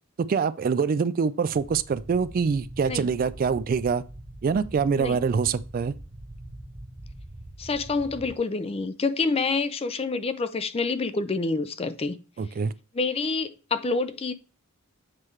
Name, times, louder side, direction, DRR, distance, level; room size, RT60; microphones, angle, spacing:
voice 1, 0.2-4.0 4.4-5.9 12.4-12.7, right 5 dB, 45° right, 0.3 m, -25 dB
sound 1, 1.5-8.4, right 1 dB, 20° right, 1.2 m, -43 dB
voice 2, 7.6-12.2 12.9-14.3, left 3 dB, 30° left, 0.5 m, -27 dB
7.5 x 4.7 x 3.2 m
head